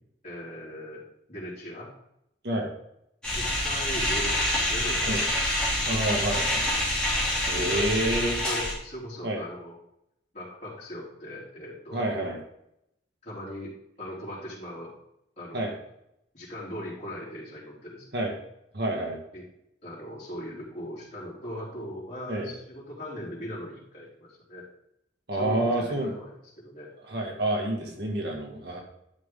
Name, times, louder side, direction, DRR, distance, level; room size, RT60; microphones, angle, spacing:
voice 1, 0.2-1.0 1.3-1.9 3.3-5.2 5.9-6.2 6.6-6.8 7.5-9.7 10.3-12.1 13.2-14.9 15.4-15.6 16.3-18.2 19.3-19.4 19.8-24.6 25.3-26.3 26.6-26.9 27.8-28.1, equal, 35° left, -8 dB, 3.8 m, -39 dB
sound 1, 3.2-8.7, left 1 dB, 5° left, 3.2 m, -27 dB
voice 2, 5.8-6.6 7.5-8.4 9.2-9.4 11.9-12.4 15.5-15.7 18.1-18.3 18.7-19.2 22.3-22.5 25.3-26.1 27.1-28.8, right 1 dB, 55° right, 0 dB, 1.9 m, -28 dB
10.5 x 6.3 x 3.8 m, 0.78 s
head